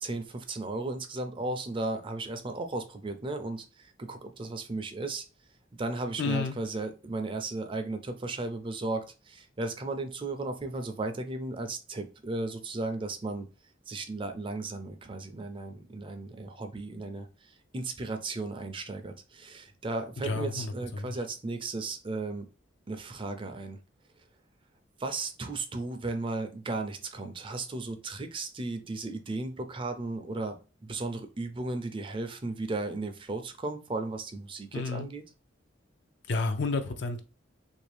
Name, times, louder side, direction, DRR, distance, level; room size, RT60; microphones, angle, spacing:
voice 1, 0.0-5.2 5.8-13.5 13.9-22.4 22.9-23.8 25.0-30.6 30.8-35.2, right 2 dB, 25° right, 6 dB, 0.4 m, -35 dB
voice 2, 6.2-6.5 20.2-21.2 34.7-35.1 36.3-37.2, left 3 dB, 65° left, 8 dB, 0.5 m, -31 dB
3.1 x 2.6 x 3.3 m, 0.33 s
head